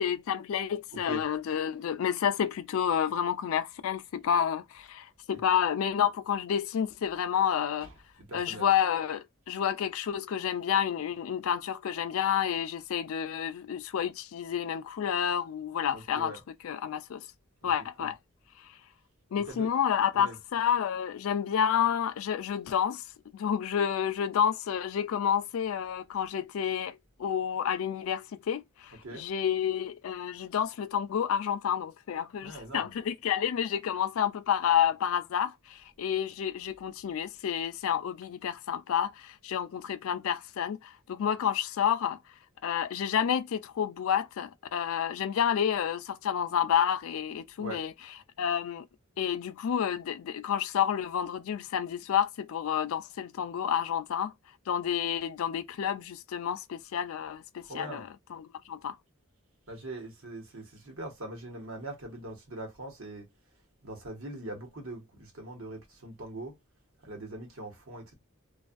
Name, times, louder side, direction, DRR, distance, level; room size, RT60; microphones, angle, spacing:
voice 1, 0.0-7.9 8.3-16.3 16.6-17.2 17.6-18.2 19.3-23.0 23.3-42.2 42.6-47.9 48.4-48.8 49.2-54.3 54.7-59.0, left 8 dB, 70° left, 0.3 m, -29 dB
voice 2, 0.9-1.3 5.3-5.4 7.8-8.7 15.9-16.4 17.6-17.7 18.0-18.1 19.4-19.7 20.1-20.4 28.9-29.2 32.4-32.9 47.6-47.8 57.6-58.0 59.7-63.2 63.8-66.5 67.0-68.1, right 1 dB, 70° right, 1.0 m, -42 dB
2.5 x 2.3 x 2.4 m
head